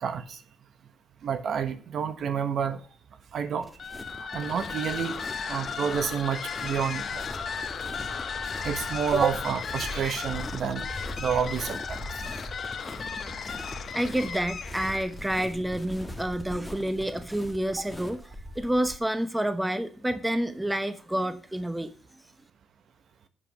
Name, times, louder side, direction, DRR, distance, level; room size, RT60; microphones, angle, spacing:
voice 1, 0.0-0.4 1.2-2.8 3.3-3.7 4.2-5.2 5.5-7.3 8.6-10.9 11.2-12.0, right 7 dB, 60° right, 1.2 m, -29 dB
sound 1, 3.6-19.0, left 1 dB, 10° left, 1.4 m, -41 dB
sound 2, 3.8-15.2, left 6 dB, 50° left, 1.0 m, -35 dB
voice 2, 13.9-18.2 18.6-21.9, right 1 dB, 10° right, 0.8 m, -29 dB
7.6 x 7.5 x 6.5 m
cardioid pair, 90°, 0 cm